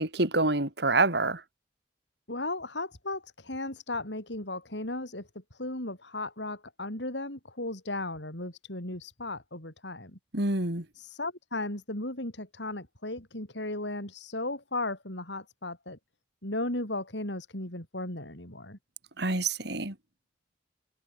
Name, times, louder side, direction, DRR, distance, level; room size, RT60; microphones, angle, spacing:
voice 1, 0.0-1.4 10.3-10.9 19.2-19.9, right 2 dB, 65° right, 4.1 m, -27 dB
voice 2, 2.3-10.2 11.0-16.0 16.4-18.8, left 2 dB, 75° left, 7.3 m, -36 dB
head